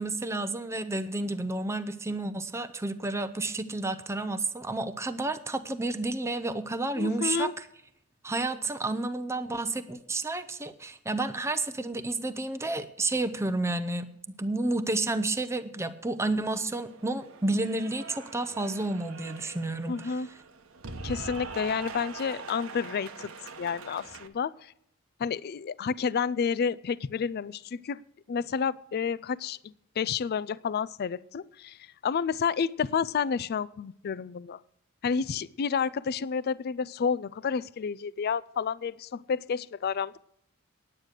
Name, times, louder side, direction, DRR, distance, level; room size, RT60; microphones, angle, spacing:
voice 1, 0.0-7.5 8.2-20.2, right 2 dB, 15° right, 9 dB, 0.6 m, -31 dB
voice 2, 7.0-7.5 19.9-20.3 21.0-23.3 23.6-24.7 25.2-28.0 28.3-34.6 35.0-40.2, left 6 dB, 50° left, 19 dB, 0.4 m, -30 dB
Cheering / Applause, 16.6-24.3, right 4 dB, 70° right, 1.0 m, -43 dB
9.8 x 9.1 x 6.4 m, 0.76 s
head